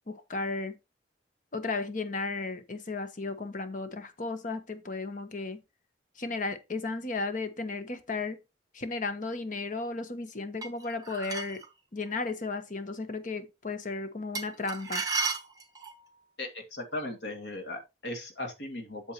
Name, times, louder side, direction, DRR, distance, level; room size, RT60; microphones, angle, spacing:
voice 1, 0.1-0.8 1.5-5.6 6.2-8.4 8.7-11.6 11.9-15.1, left 3 dB, 45° left, 1.1 m, -34 dB
sound 1, 10.6-11.7 14.3-16.0, right 4 dB, 20° right, 1.3 m, -33 dB
voice 2, 16.4-19.1, left 2 dB, 85° left, 2.3 m, -37 dB
8.0 x 7.3 x 3.0 m
head